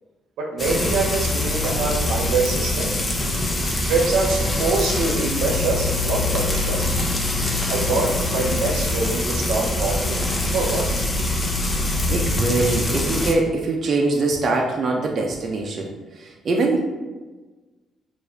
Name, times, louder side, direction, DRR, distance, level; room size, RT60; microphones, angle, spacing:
voice 1, 0.4-2.9 3.9-6.9 7.7-10.2 10.5-11.0, right 3 dB, 85° right, -1 dB, 0.7 m, -24 dB
Frying (food), 0.6-13.3, left 2 dB, 25° left, 0.6 m, -24 dB
voice 2, 12.1-16.9, right 2 dB, 50° right, 1 dB, 0.5 m, -23 dB
4.7 x 2.5 x 2.7 m, 1.2 s
cardioid pair, 90°, 0 cm